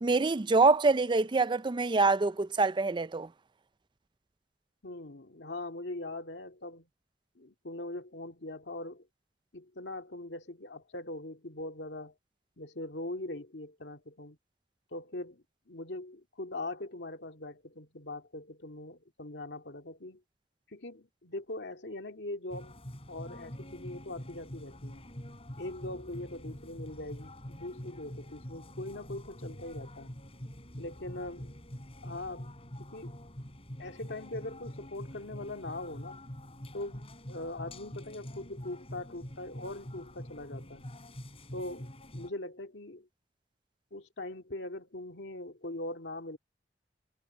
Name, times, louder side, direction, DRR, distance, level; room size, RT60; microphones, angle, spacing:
voice 1, 0.0-3.3, right 3 dB, 25° right, 0.4 m, -25 dB
voice 2, 4.8-6.9 7.4-9.1 9.5-12.1 12.6-14.4 14.9-20.2 20.7-22.8 23.1-25.0 25.6-30.1 30.8-31.5 32.0-32.5 32.8-33.2 33.8-36.2 36.7-40.9 41.5-43.1 43.9-46.4, left 2 dB, 80° left, 2.2 m, -41 dB
sound 1, 22.5-42.3, equal, 35° left, 3.6 m, -45 dB
head